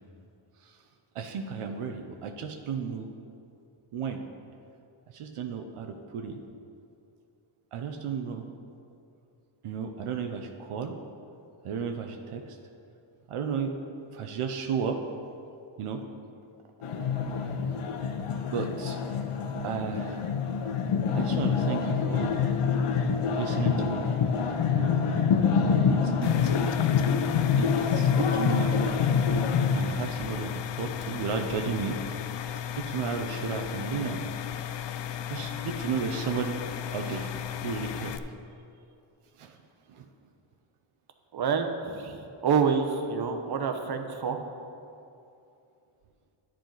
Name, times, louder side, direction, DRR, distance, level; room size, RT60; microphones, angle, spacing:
voice 1, 1.1-3.1 3.9-4.2 5.1-6.4 7.7-8.5 9.6-11.0 11.6-12.6 13.3-13.7 14.1-15.0 15.8-16.0 18.5-19.0 19.6-20.2 21.1-22.3 23.3-24.0 24.7-25.0 25.8-26.6 27.6-29.0 29.7-32.0 32.8-34.2 35.3-36.6 36.9-37.3 37.6-38.2 39.4-39.6 39.9-40.1, right 6 dB, 85° right, 5 dB, 0.7 m, -33 dB
sound 1, 16.8-29.8, left 6 dB, 85° left, 0.8 m, -26 dB
sound 2, 26.2-38.2, left 10 dB, 60° left, 0.5 m, -35 dB
voice 2, 41.3-44.4, right 6 dB, 50° right, 5 dB, 0.9 m, -27 dB
10.0 x 7.6 x 3.9 m, 2.6 s
cardioid pair, 75°, 49 cm